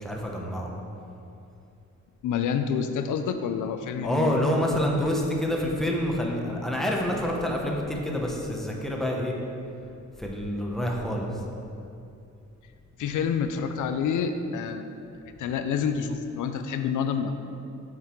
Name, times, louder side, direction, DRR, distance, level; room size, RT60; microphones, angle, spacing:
voice 1, 0.0-0.7 4.0-9.3 10.2-11.3, equal, ahead, -1 dB, 1.1 m, -27 dB
voice 2, 2.2-4.4 13.0-14.9 15.4-17.3, left 7 dB, 90° left, 8 dB, 0.5 m, -28 dB
7.3 x 5.9 x 4.6 m, 2.6 s
cardioid pair, 100°, 30 cm